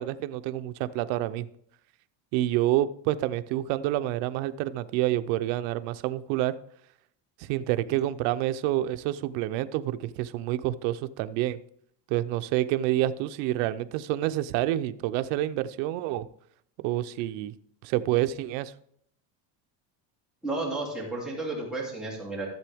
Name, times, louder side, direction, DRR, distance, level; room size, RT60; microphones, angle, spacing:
voice 1, 0.0-1.5 2.3-6.6 7.4-11.6 12.1-16.2 16.8-17.5 17.8-18.7, right 14 dB, 90° right, 12 dB, 0.8 m, -28 dB
voice 2, 20.4-22.5, right 2 dB, ahead, -6 dB, 2.9 m, -32 dB
13.5 x 7.7 x 3.5 m, 0.68 s
cardioid pair, 165°, 46 cm